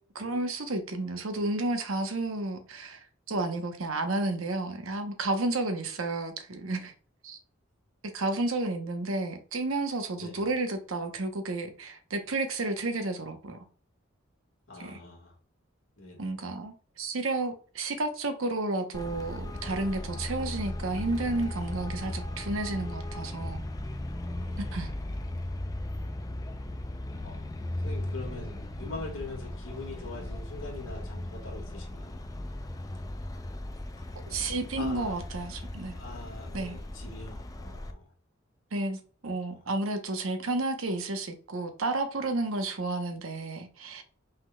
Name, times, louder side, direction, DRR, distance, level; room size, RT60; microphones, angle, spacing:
voice 1, 0.1-6.9 7.2-7.4 8.1-13.6 14.8-15.0 16.2-23.6 24.6-24.9 34.2-35.9 36.5-36.8 38.7-39.0 39.2-44.0, right 2 dB, 80° right, 0.9 m, -31 dB
voice 2, 14.7-15.3 16.0-16.3 24.4-24.9 27.2-27.4 27.8-32.2 34.0-34.1 34.8-35.2 35.5-35.6 35.9-38.1 39.5-39.6, left 2 dB, 75° left, 1.7 m, -43 dB
Traffic noise roadway noise, 18.9-37.9, left 1 dB, 15° left, 0.4 m, -37 dB
5.6 x 3.7 x 2.2 m
head